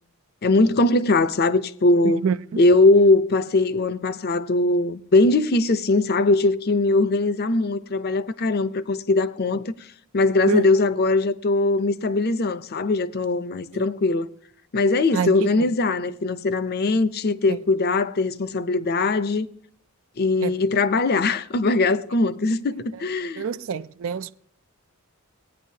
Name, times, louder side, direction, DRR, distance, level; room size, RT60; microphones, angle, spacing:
voice 1, 0.4-2.2 2.6-9.7 10.1-14.3 14.7-19.5 20.2-23.4, left 2 dB, 45° left, 0.6 m, -21 dB
voice 2, 2.2-2.6 10.5-10.7 13.7-13.8 15.1-15.7 20.4-20.5 23.4-24.4, right 6 dB, 60° right, 0.4 m, -26 dB
18.5 x 9.7 x 2.8 m
head